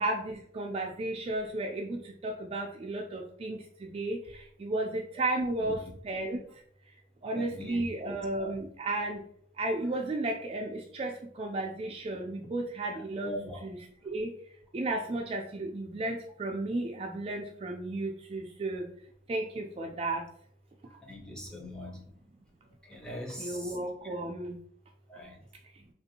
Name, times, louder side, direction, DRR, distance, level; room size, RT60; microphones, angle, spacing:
voice 1, 0.0-6.4 7.2-9.2 9.6-13.3 13.6-13.8 14.0-14.3 14.7-18.9 19.3-20.2 23.4-24.6, right 2 dB, 30° right, 0.3 m, -33 dB
voice 2, 7.3-8.5 13.2-13.7 20.9-22.0 22.8-23.8 24.0-24.1 25.1-25.4, equal, 5° left, 0.6 m, -41 dB
3.5 x 2.5 x 2.7 m
head